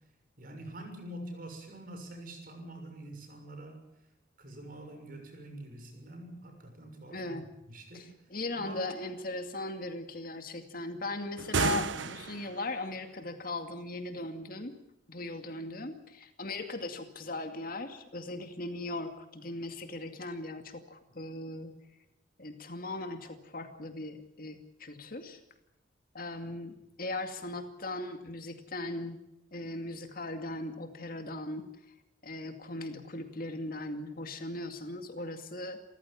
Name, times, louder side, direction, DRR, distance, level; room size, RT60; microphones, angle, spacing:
voice 1, 0.4-3.8 4.4-8.1 8.5-8.9, right 1 dB, 50° right, 4 dB, 6.7 m, -45 dB
voice 2, 7.1-7.5 7.9-14.8 15.1-21.8 22.4-25.4 26.1-29.2 29.5-31.7 32.2-35.8, left 2 dB, 50° left, 6 dB, 2.4 m, -38 dB
sound 1, 11.4-12.7, right 4 dB, 80° right, 1.1 m, -31 dB
28.5 x 15.0 x 8.7 m, 0.85 s
head